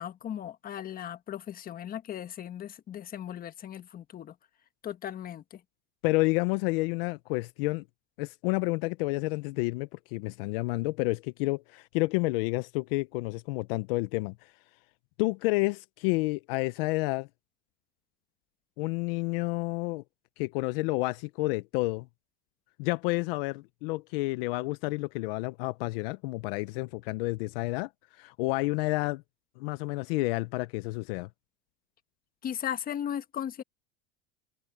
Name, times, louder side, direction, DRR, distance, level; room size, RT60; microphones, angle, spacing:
voice 1, 0.0-4.3 4.8-5.6 32.4-33.6, left 10 dB, 30° left, 1.5 m, -37 dB
voice 2, 6.0-7.8 8.2-14.5 15.2-17.3 18.8-20.0 20.4-22.1 22.8-27.9 28.2-29.2 29.6-31.3, left 23 dB, 70° left, 0.8 m, -30 dB
supercardioid pair, 135°, 30 cm